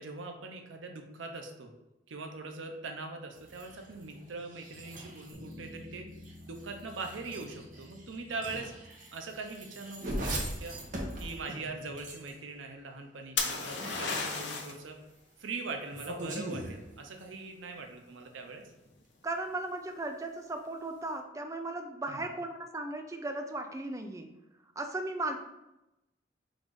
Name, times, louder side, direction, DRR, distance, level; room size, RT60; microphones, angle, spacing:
voice 1, 0.0-1.7 2.1-6.1 6.5-8.7 9.1-10.7 11.2-15.0 15.4-18.7 22.1-22.2, right 3 dB, 85° right, 4 dB, 0.6 m, -41 dB
sound 1, 3.3-12.5 13.6-14.8 15.8-17.4, right 1 dB, 45° right, 0.8 m, -42 dB
sound 2, 5.3-9.7, left 1 dB, 15° left, 1.1 m, -52 dB
sound 3, 13.4-14.8 18.5-18.9, left 4 dB, 65° left, 0.6 m, -33 dB
voice 2, 19.2-24.3 24.8-25.4, right 2 dB, 15° right, 5 dB, 0.3 m, -36 dB
3.9 x 2.5 x 4.7 m, 0.92 s
head